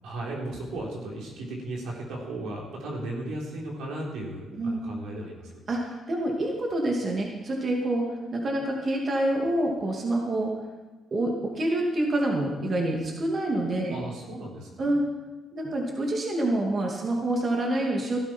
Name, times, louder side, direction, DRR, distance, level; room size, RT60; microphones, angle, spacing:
voice 1, 0.0-5.6 13.9-14.9, right 1 dB, 85° right, -3 dB, 3.9 m, -35 dB
voice 2, 5.7-8.1 8.3-10.5 11.1-14.0 14.8-15.0 15.5-18.2, right 1 dB, 45° right, -1 dB, 2.5 m, -27 dB
17.5 x 12.5 x 4.6 m, 1.2 s
cardioid pair, 90°, 0 cm